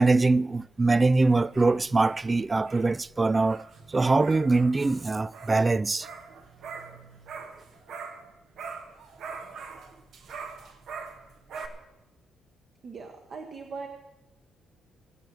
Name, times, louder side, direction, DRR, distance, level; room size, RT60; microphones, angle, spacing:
voice 1, 0.0-6.1, right 3 dB, 25° right, 0.3 m, -23 dB
sound 1, 1.3-8.3 8.6-11.7, right 5 dB, 75° right, 1.4 m, -43 dB
voice 2, 12.8-13.9, right 4 dB, 50° right, 1.3 m, -40 dB
21.5 x 8.0 x 4.6 m
cardioid pair, 90°, 0 cm